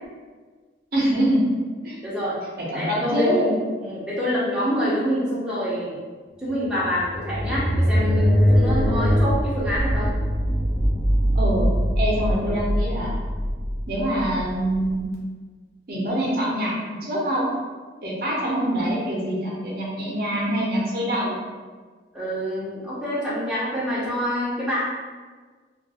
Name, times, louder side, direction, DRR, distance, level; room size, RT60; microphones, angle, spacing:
voice 1, 0.9-1.5 1.8-2.0 2.6-3.5 11.3-11.7 12.0-13.2 13.9-15.0 15.9-17.5 18.0-21.4, equal, 55° right, -5 dB, 0.6 m, -24 dB
voice 2, 2.0-2.4 2.7-3.5 3.8-6.0 6.4-10.1 12.5-12.6 22.1-24.8, equal, 5° right, -9 dB, 0.5 m, -26 dB
sound 1, 6.7-15.0, equal, 70° left, 0.5 m, -22 dB
2.3 x 2.2 x 2.8 m, 1.4 s
head